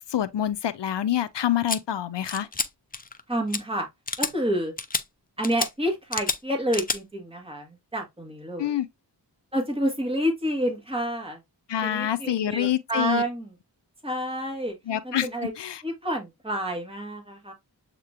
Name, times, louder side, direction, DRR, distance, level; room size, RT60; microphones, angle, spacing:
voice 1, 0.1-2.5 8.6-8.9 11.7-13.2 14.9-15.3 15.6-15.8, left 11 dB, 75° left, 0.5 m, -26 dB
sound 1, 1.7-1.8 2.3-2.7 2.9-3.2 3.5-3.6 4.1-4.3 4.8-5.0 5.4-5.7 6.1-6.4 6.7-7.0, left 4 dB, 20° left, 0.4 m, -28 dB
voice 2, 3.3-3.9 4.2-4.7 5.4-8.8 9.5-11.4 11.8-13.5 14.0-14.8 15.0-15.5 15.8-17.5, equal, 15° right, 1.8 m, -29 dB
7.4 x 2.9 x 2.4 m
wide cardioid pair, 100°, 43 cm